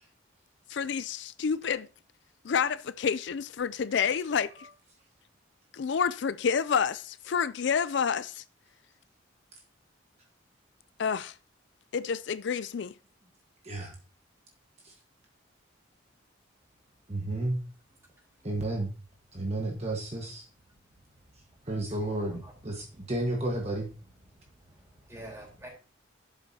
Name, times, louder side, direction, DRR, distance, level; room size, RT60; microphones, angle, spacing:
voice 1, 0.7-1.9 2.4-4.7 5.7-8.4 11.0-11.3 11.9-12.9, left 6 dB, 60° left, 0.4 m, -29 dB
voice 2, 17.1-17.6 18.4-18.9 19.3-20.4 21.7-23.9, right 1 dB, 30° right, 1.4 m, -32 dB
voice 3, 22.0-23.0 24.3-25.7, right 1 dB, 15° right, 3.8 m, -49 dB
11.5 x 7.6 x 2.8 m
head